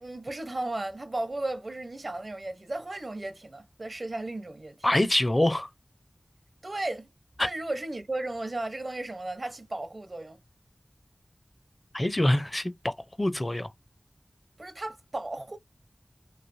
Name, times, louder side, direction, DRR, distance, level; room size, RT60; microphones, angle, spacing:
voice 1, 0.0-4.9 6.6-7.1 7.4-10.4 14.6-15.6, right 2 dB, 60° right, 0.8 m, -35 dB
voice 2, 4.8-5.7 7.4-7.5 11.9-13.7, left 1 dB, 30° left, 0.5 m, -25 dB
3.1 x 2.6 x 2.6 m
wide cardioid pair, 60°, 0 cm